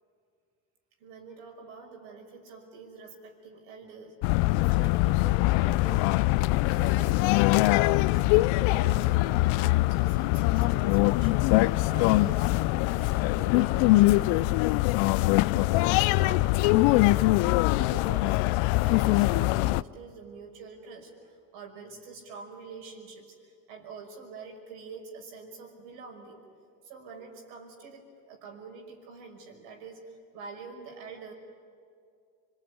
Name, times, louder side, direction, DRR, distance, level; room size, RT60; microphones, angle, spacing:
voice 1, 1.0-6.3 6.7-11.5 11.9-14.8 15.2-26.4 26.8-31.3, right 4 dB, 85° right, 2 dB, 5.8 m, -46 dB
sound 1, 4.2-19.8, left 20 dB, 75° left, 0.6 m, -23 dB
26.0 x 22.5 x 9.7 m, 2.3 s
supercardioid pair, 80°, 47 cm